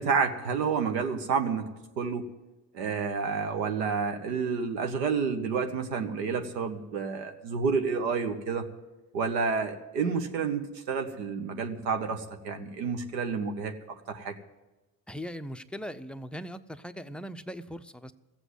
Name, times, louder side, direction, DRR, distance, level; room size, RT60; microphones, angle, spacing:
voice 1, 0.0-1.7 2.0-2.3 2.7-8.6 9.1-13.7 14.1-14.3, right 5 dB, 75° right, 7 dB, 1.1 m, -29 dB
voice 2, 15.1-18.1, equal, ahead, 9 dB, 0.5 m, -39 dB
15.0 x 8.0 x 9.3 m, 1.1 s
figure-of-eight pair, 50°, 50 cm